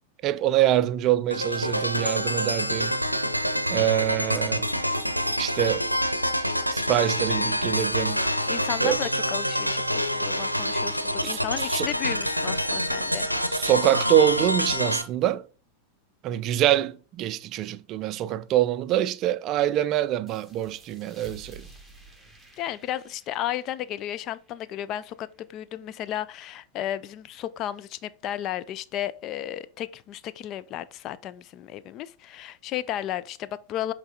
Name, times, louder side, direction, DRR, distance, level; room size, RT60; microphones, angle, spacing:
voice 1, 0.2-3.0 3.7-4.7 5.4-5.8 6.7-8.2 8.8-9.0 11.2-11.9 13.5-15.4 16.2-21.7, right 12 dB, 35° right, 0.4 m, -25 dB
sound 1, 1.3-15.0, equal, 90° right, 0.6 m, -27 dB
voice 2, 8.5-13.3 22.6-33.9, left 12 dB, 35° left, 0.4 m, -33 dB
sound 2, 20.3-25.5, right 3 dB, ahead, 1.5 m, -51 dB
8.0 x 3.3 x 3.9 m
figure-of-eight pair, 90°, 0 cm